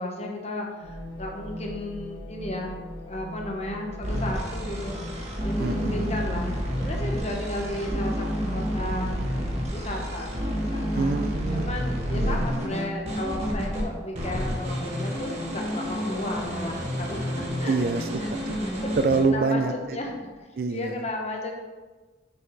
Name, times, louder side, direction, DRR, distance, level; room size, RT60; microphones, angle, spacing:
voice 1, 0.0-2.7 3.0-5.1 5.4-9.2 9.7-11.1 11.5-17.7 18.8-19.0 19.3-19.6 19.9-20.2 20.7-21.5, left 1 dB, 35° left, 1 dB, 1.1 m, -34 dB
sound 1, 0.8-20.4, left 1 dB, 90° left, 1.9 m, -44 dB
sound 2, 4.0-13.8 14.1-19.2, equal, 35° right, 1.4 m, -29 dB
voice 2, 5.6-6.3 10.9-11.7 12.1-12.6 17.7-18.6 19.0-20.0 20.6-21.0, right 4 dB, 55° right, 9 dB, 0.4 m, -26 dB
6.3 x 4.5 x 4.7 m, 1.3 s
head